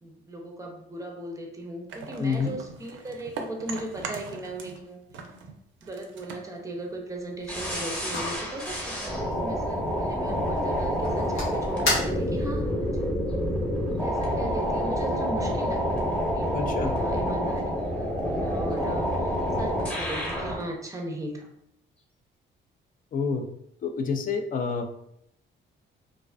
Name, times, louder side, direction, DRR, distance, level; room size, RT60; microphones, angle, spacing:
voice 1, 0.0-5.0 5.8-12.7 14.0-17.6 18.0-21.5, right 1 dB, 15° right, 1 dB, 0.5 m, -38 dB
sound 1, 1.9-4.8 5.1-7.5, right 4 dB, 70° right, 0.4 m, -40 dB
voice 2, 2.2-2.6 16.5-17.0 23.1-23.4 23.8-25.0, left 5 dB, 45° left, 5 dB, 0.4 m, -28 dB
sound 2, 7.4-12.6, left 1 dB, 85° left, 1.2 m, -35 dB
sound 3, 7.5-20.6, equal, 5° left, 0.9 m, -28 dB
2.4 x 2.3 x 2.2 m, 0.75 s
cardioid pair, 90°, 20 cm